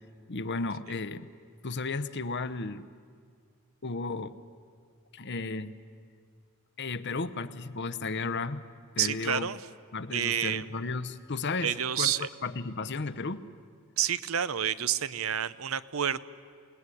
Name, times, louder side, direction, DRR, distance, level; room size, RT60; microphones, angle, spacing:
voice 1, 0.3-1.3 1.6-2.8 3.8-4.3 5.1-5.7 6.8-8.6 8.9-9.4 9.9-12.1 12.4-13.4, left 3 dB, 50° left, 14 dB, 0.9 m, -34 dB
voice 2, 9.0-9.6 10.1-10.7 11.6-12.3 14.0-16.2, right 9 dB, 70° right, 15 dB, 0.7 m, -29 dB
28.0 x 18.5 x 9.9 m, 2.1 s
head